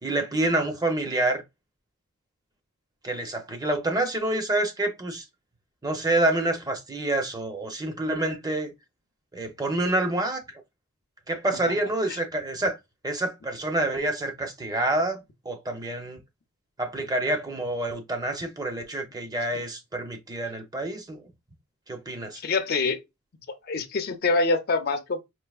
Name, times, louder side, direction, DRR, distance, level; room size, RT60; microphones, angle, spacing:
voice 1, 0.0-1.4 3.0-5.3 5.8-8.7 9.3-10.6 11.3-12.8 13.0-16.2 16.8-21.2 21.9-22.4, right 2 dB, 20° right, 0.6 m, -27 dB
voice 2, 22.4-23.0 23.5-25.2, left 3 dB, 50° left, 0.5 m, -25 dB
4.6 x 2.7 x 2.3 m
head